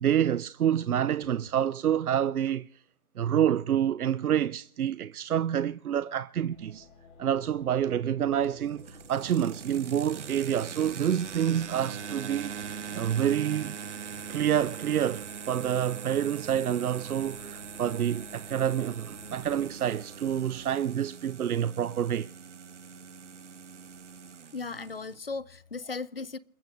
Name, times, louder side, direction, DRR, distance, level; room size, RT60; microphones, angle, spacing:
voice 1, 0.0-2.7 3.2-6.9 7.2-13.8 14.3-22.3, right 10 dB, 85° right, 0.6 m, -28 dB
sound 1, 6.5-20.7, left 3 dB, 25° left, 4.5 m, -54 dB
sound 2, 8.4-25.2, right 7 dB, 55° right, 1.0 m, -42 dB
voice 2, 24.5-26.4, left 4 dB, 45° left, 0.5 m, -36 dB
28.5 x 14.5 x 2.5 m
hypercardioid pair, 165°, 43 cm